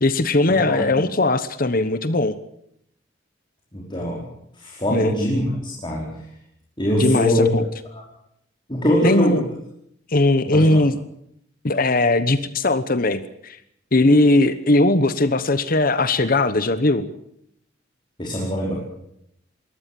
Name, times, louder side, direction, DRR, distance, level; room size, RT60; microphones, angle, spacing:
voice 1, 0.0-2.4 4.9-5.1 7.0-7.6 9.0-9.5 10.1-11.0 11.6-13.6 13.9-17.1, left 2 dB, 45° left, 13 dB, 1.1 m, -19 dB
voice 2, 3.7-4.2 4.6-6.1 6.8-7.5 7.9-8.0 8.7-9.4 10.5-10.6 18.2-18.8, left 1 dB, 25° left, -3 dB, 5.0 m, -22 dB
22.5 x 17.5 x 7.7 m, 0.73 s
head